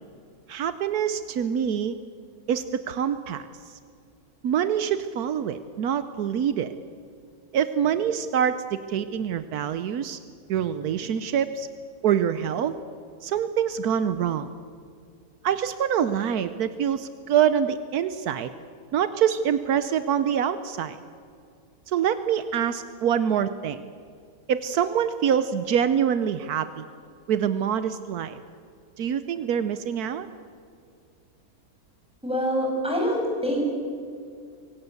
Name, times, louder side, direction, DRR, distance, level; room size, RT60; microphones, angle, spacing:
voice 1, 0.5-2.0 2.5-3.5 4.4-6.7 7.5-10.2 10.5-11.7 12.0-12.7 13.2-14.5 15.4-18.5 18.9-21.0 21.9-23.8 24.5-26.8 27.3-28.4 29.0-30.3, right 8 dB, 80° right, 12 dB, 1.3 m, -25 dB
voice 2, 32.2-33.6, equal, 5° right, -1 dB, 6.4 m, -25 dB
24.0 x 17.5 x 8.1 m, 2.3 s
omnidirectional pair, 1.6 m